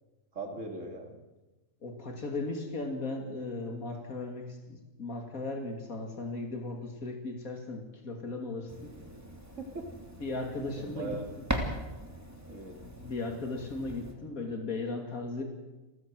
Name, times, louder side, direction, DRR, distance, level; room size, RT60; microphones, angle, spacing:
voice 1, 0.3-1.2 9.6-9.9 10.8-11.3 12.5-12.8, right 2 dB, 60° right, 3 dB, 3.2 m, -39 dB
voice 2, 1.8-8.9 10.2-11.5 12.8-15.4, left 3 dB, 90° left, 3 dB, 3.1 m, -37 dB
sound 1, 8.7-14.1, right 1 dB, 10° right, 2.9 m, -40 dB
28.5 x 14.5 x 7.8 m, 1.1 s
omnidirectional pair, 1.4 m